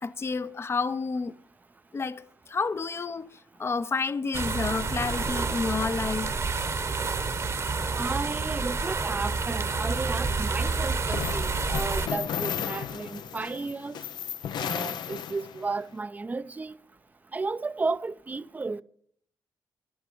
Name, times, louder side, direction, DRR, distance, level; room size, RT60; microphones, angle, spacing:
voice 1, 0.0-1.3 1.9-6.4, left 4 dB, 35° left, 0.6 m, -30 dB
sound 1, 4.3-12.1, right 4 dB, 40° right, 1.0 m, -29 dB
sound 2, 4.9-13.6, right 5 dB, 75° right, 2.1 m, -52 dB
voice 2, 8.0-14.0 14.6-16.8 17.3-18.8, right 3 dB, 25° right, 0.5 m, -33 dB
sound 3, 10.6-15.8, left 9 dB, 85° left, 0.6 m, -34 dB
11.5 x 7.9 x 8.5 m
cardioid pair, 85°, 7 cm